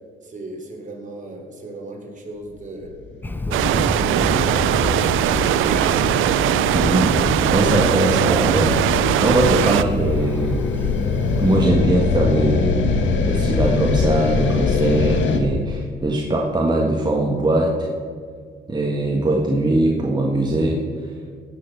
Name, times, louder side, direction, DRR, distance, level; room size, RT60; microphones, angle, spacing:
voice 1, 0.2-2.9 3.4-5.8, right 2 dB, 40° right, 1 dB, 3.3 m, -36 dB
sound 1, 2.8-15.4, left 4 dB, 70° left, 1.5 m, -23 dB
Thunder, 3.2-11.7, left 2 dB, 10° left, 0.8 m, -31 dB
sound 2, 3.5-9.8, right 12 dB, 85° right, 0.5 m, -20 dB
voice 2, 6.7-7.1 7.5-8.8 9.2-10.6 11.4-17.9 18.7-20.8, right 1 dB, 20° right, -1 dB, 1.6 m, -21 dB
17.5 x 6.7 x 7.1 m, 2.1 s
cardioid pair, 90°, 20 cm